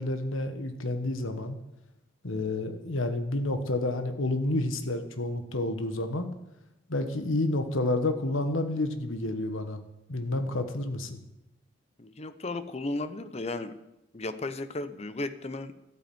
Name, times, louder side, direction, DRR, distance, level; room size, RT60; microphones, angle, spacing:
voice 1, 0.0-1.6 2.2-6.3 6.9-9.8 10.1-11.2, left 2 dB, 90° left, 8 dB, 1.4 m, -29 dB
voice 2, 12.0-13.7 14.1-15.7, left 2 dB, 30° left, 12 dB, 0.7 m, -34 dB
12.5 x 8.7 x 7.8 m, 0.90 s
head